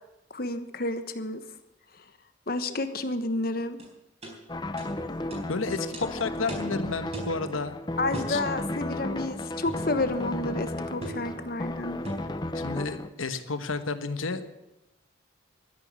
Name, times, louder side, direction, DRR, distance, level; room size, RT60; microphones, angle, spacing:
voice 1, 0.3-1.4 2.5-3.9 8.0-12.0, left 2 dB, 45° left, 10 dB, 1.2 m, -30 dB
sound 1, 3.8-3.9 4.2-4.4 4.8-4.9 5.3-5.5 5.9-6.1 6.5-6.7 7.1-7.4 8.1-8.4 9.7-9.9 11.0-11.3 12.0-12.3, right 1 dB, 30° right, 4.3 m, -37 dB
sound 2, 4.5-13.1, left 1 dB, 20° left, 0.7 m, -34 dB
voice 2, 5.5-7.8 8.3-8.4 12.5-14.5, left 4 dB, 90° left, 10 dB, 1.3 m, -31 dB
13.0 x 10.5 x 8.2 m, 0.94 s
head